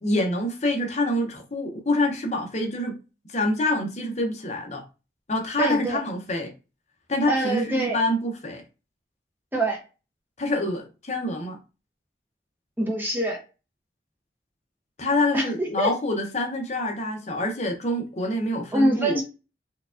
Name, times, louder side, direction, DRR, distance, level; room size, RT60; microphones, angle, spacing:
voice 1, 0.0-3.0 3.3-4.8 5.3-6.5 7.1-8.6 10.4-11.6 15.0-19.2, left 1 dB, 40° left, 0.7 m, -26 dB
voice 2, 5.6-6.0 7.3-8.0 9.5-9.8 12.8-13.4 15.3-16.0 18.7-19.2, right 1 dB, 10° right, 0.7 m, -24 dB
4.5 x 2.3 x 2.4 m
head